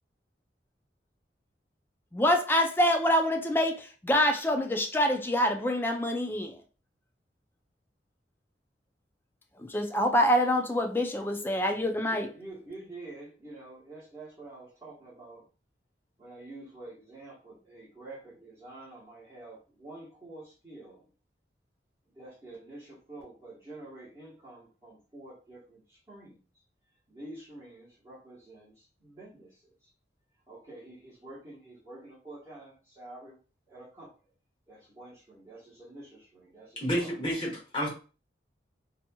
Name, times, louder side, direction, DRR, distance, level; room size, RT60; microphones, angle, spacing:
voice 1, 2.1-6.6 9.6-12.3, equal, 10° left, 0.3 m, -26 dB
voice 2, 12.1-15.4 16.2-21.1 22.1-26.4 27.1-29.9 30.5-33.4 33.7-34.1 34.7-37.1, right 2 dB, 20° right, 1.1 m, -48 dB
voice 3, 36.8-37.9, equal, 30° left, 1.0 m, -30 dB
2.8 x 2.7 x 2.2 m
head